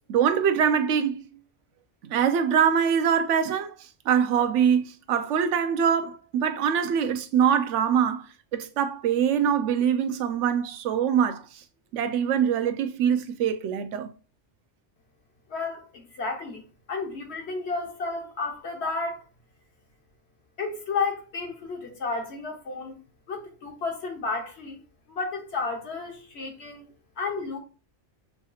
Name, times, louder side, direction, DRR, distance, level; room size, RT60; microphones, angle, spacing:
voice 1, 0.1-1.2 2.1-3.7 4.1-8.2 8.5-11.4 11.9-14.1, right 8 dB, 90° right, 0.9 m, -23 dB
voice 2, 15.5-16.6 16.9-19.2 20.6-23.0 23.3-24.8 25.1-26.8 27.2-27.6, left 4 dB, 70° left, 1.3 m, -32 dB
6.7 x 2.8 x 2.3 m
omnidirectional pair, 1.2 m